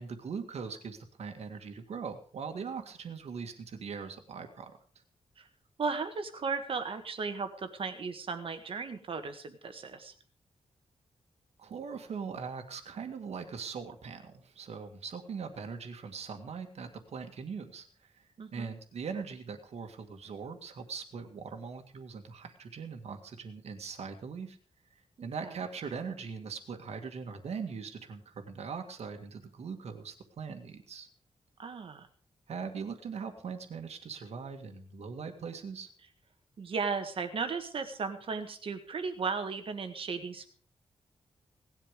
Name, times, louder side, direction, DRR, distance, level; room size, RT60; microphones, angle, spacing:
voice 1, 0.0-4.7 11.6-24.6 25.2-31.1 32.5-35.9, right 5 dB, 70° right, 6 dB, 2.0 m, -41 dB
voice 2, 5.8-10.1 18.4-18.7 25.2-25.5 31.6-32.1 36.6-40.5, right 5 dB, 55° right, 8 dB, 1.7 m, -36 dB
18.0 x 11.5 x 5.1 m, 0.43 s
wide cardioid pair, 165°, 11 cm